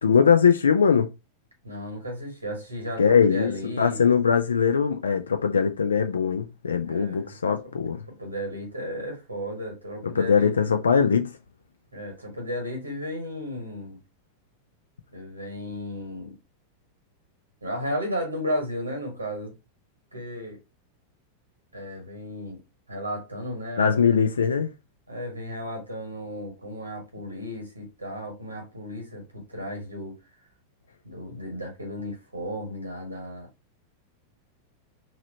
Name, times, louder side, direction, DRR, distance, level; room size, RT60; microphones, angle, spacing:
voice 1, 0.0-1.1 3.0-8.0 10.2-11.3 23.8-24.7, left 6 dB, 70° left, 0.3 m, -21 dB
voice 2, 1.6-4.0 6.8-7.3 7.6-7.7 8.1-10.7 11.9-14.0 15.1-16.3 17.6-19.5 20.1-20.6 21.7-22.6 22.9-24.0 25.1-30.2 31.0-33.5, equal, 80° right, 1.5 m, -34 dB
2.9 x 2.9 x 2.7 m
figure-of-eight pair, 90°, 0 cm